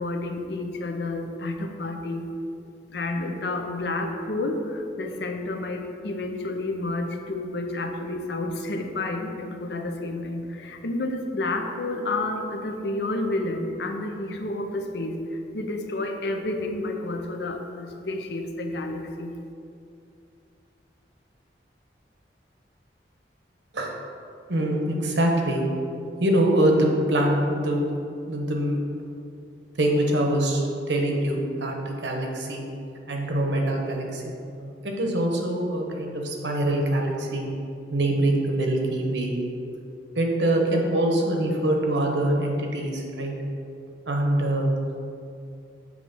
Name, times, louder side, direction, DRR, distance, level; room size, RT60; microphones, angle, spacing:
voice 1, 0.0-2.3 2.9-19.3, left 2 dB, 65° left, 5 dB, 0.6 m, -30 dB
voice 2, 24.5-25.6 26.2-27.8 28.3-28.8 29.8-30.6 30.9-32.6 33.1-34.2 34.6-37.5 37.9-39.3 40.2-43.3 44.1-44.7, right 1 dB, 75° right, 1 dB, 0.9 m, -24 dB
7.5 x 3.1 x 5.3 m, 2.5 s
head